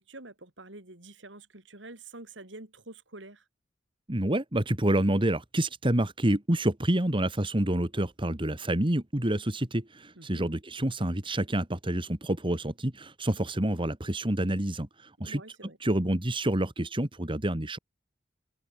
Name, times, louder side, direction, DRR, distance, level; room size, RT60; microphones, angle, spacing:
voice 1, 0.0-3.4 7.9-8.1 10.2-10.5 15.2-15.8, right 2 dB, 80° right, 5.0 m, -47 dB
voice 2, 4.1-15.4 15.8-17.8, right 1 dB, 30° right, 2.0 m, -28 dB
open air
head